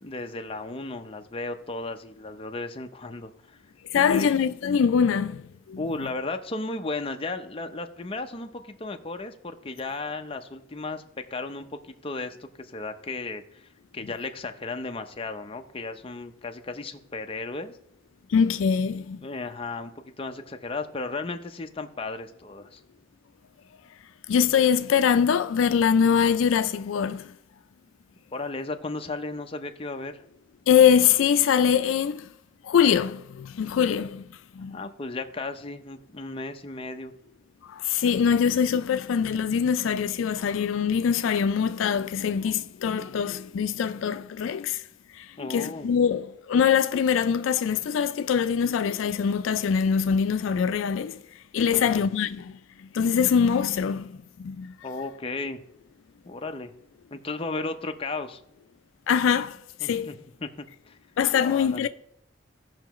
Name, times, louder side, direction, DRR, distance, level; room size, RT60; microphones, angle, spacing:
voice 1, 0.0-3.6 4.1-4.3 5.8-13.7 13.9-17.7 19.2-22.8 28.3-30.2 34.7-37.1 45.4-45.9 51.7-52.0 54.8-55.6 56.3-56.7 57.1-58.4 59.8-61.0 61.4-61.9, left 3 dB, 30° left, 0.6 m, -35 dB
voice 2, 3.9-5.8 18.3-19.2 24.3-27.3 30.7-32.3 32.6-34.2 34.5-34.8 37.6-44.8 45.1-51.2 51.5-54.7 59.1-60.1 61.2-61.9, left 7 dB, 80° left, 0.4 m, -23 dB
16.0 x 5.7 x 3.0 m
head